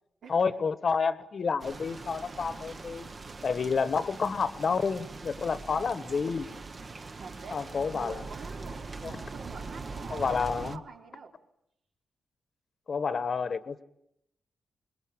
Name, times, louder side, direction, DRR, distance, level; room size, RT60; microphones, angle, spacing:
voice 1, 0.3-3.1 3.4-6.5 7.5-8.2 9.0-9.1 10.1-10.8 12.9-13.8, left 5 dB, 45° left, 1.3 m, -29 dB
sound 1, 1.6-10.8, right 3 dB, 30° right, 1.1 m, -42 dB
voice 2, 7.2-11.4, right 5 dB, 70° right, 3.6 m, -47 dB
27.0 x 21.5 x 8.8 m
wide cardioid pair, 150°, 0 cm